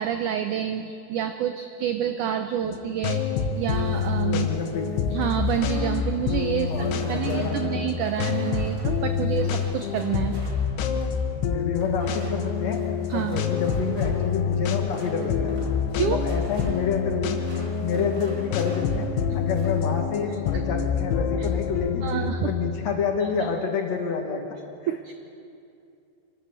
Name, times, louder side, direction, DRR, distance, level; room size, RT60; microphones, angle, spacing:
voice 1, 0.0-3.2 3.6-4.5 5.1-10.4 13.1-13.5 15.9-16.2 21.4-21.5 22.0-22.5 24.9-25.1, right 10 dB, 80° right, 8 dB, 1.8 m, -28 dB
sound 1, 2.6-22.3, left 6 dB, 90° left, 3.1 m, -27 dB
sound 2, 3.5-11.3 11.8-19.0 19.3-19.9, right 2 dB, 30° right, 2.8 m, -48 dB
voice 2, 4.3-5.0 6.6-7.9 11.5-15.6 16.0-17.4 17.8-19.1 19.3-22.1 22.4-24.4, left 6 dB, 55° left, 3 dB, 2.2 m, -29 dB
25.0 x 13.0 x 8.2 m, 2.5 s
omnidirectional pair, 4.5 m